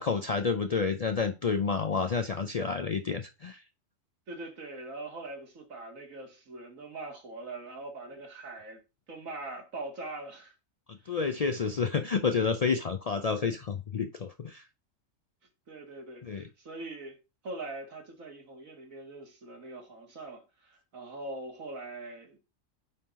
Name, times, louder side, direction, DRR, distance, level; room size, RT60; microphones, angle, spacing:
voice 1, 0.0-3.6 10.9-14.7 16.2-16.5, left 5 dB, 85° left, 0.3 m, -29 dB
voice 2, 4.3-8.8 9.1-10.5 11.0-11.2 15.7-17.2 17.4-22.4, right 2 dB, 90° right, 2.1 m, -42 dB
9.2 x 3.9 x 4.0 m
omnidirectional pair, 1.4 m